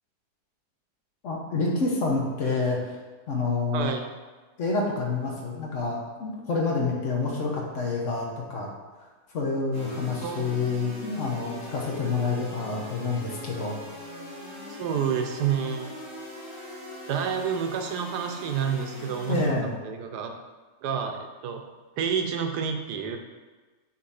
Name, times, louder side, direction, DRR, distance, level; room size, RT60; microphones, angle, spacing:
voice 1, 1.2-3.0 3.3-3.9 4.6-8.7 9.3-13.8 19.3-19.7, left 3 dB, 55° left, -1 dB, 1.2 m, -28 dB
voice 2, 3.7-4.1 10.2-10.6 14.8-16.0 17.1-20.3 20.8-21.6 22.0-23.2, right 7 dB, 85° right, 5 dB, 1.3 m, -29 dB
sound 1, 9.7-19.5, equal, 50° right, 2.4 m, -41 dB
6.5 x 2.9 x 5.5 m, 1.3 s
omnidirectional pair, 1.7 m